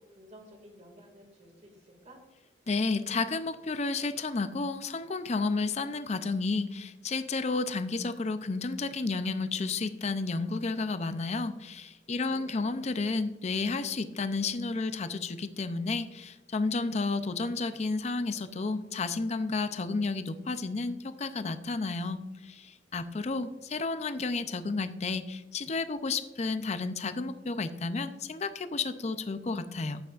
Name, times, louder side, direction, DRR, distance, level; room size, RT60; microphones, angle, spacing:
voice 1, 0.1-2.2 12.1-12.7, equal, 40° right, 3 dB, 2.1 m, -52 dB
voice 2, 2.7-30.0, left 3 dB, 40° left, 11 dB, 0.5 m, -32 dB
11.0 x 8.2 x 2.5 m, 1.1 s
head